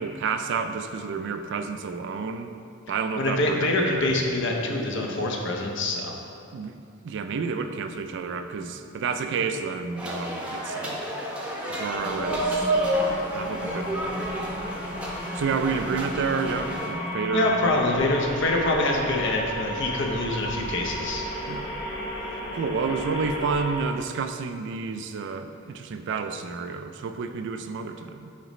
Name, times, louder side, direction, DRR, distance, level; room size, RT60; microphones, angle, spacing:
voice 1, 0.0-2.5 2.9-4.1 6.5-6.8 7.0-11.0 11.7-12.8 13.3-14.3 15.3-17.5 21.5-21.7 22.5-28.3, right 5 dB, 60° right, 8 dB, 0.4 m, -30 dB
voice 2, 3.2-6.1 17.3-21.2, left 2 dB, 65° left, 0 dB, 0.8 m, -25 dB
sound 1, 10.0-16.9, right 1 dB, 5° right, 0.7 m, -30 dB
sound 2, 11.9-23.8, equal, 20° left, 1.0 m, -34 dB
8.4 x 4.1 x 3.1 m, 2.5 s
head